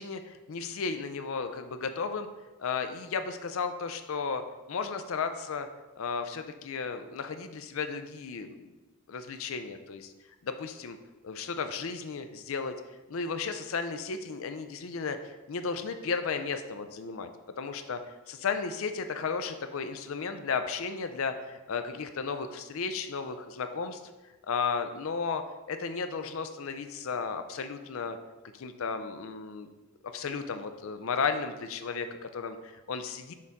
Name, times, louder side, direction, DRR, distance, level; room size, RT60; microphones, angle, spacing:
voice 1, 0.0-2.3 2.6-4.4 4.7-5.7 6.0-8.7 9.1-10.1 10.4-11.0 11.2-12.7 13.1-17.3 17.6-18.0 18.3-24.0 24.5-25.4 25.7-28.2 28.5-29.7 30.1-33.3, left 5 dB, 65° left, 8 dB, 0.5 m, -34 dB
6.5 x 3.6 x 4.0 m, 1.1 s
head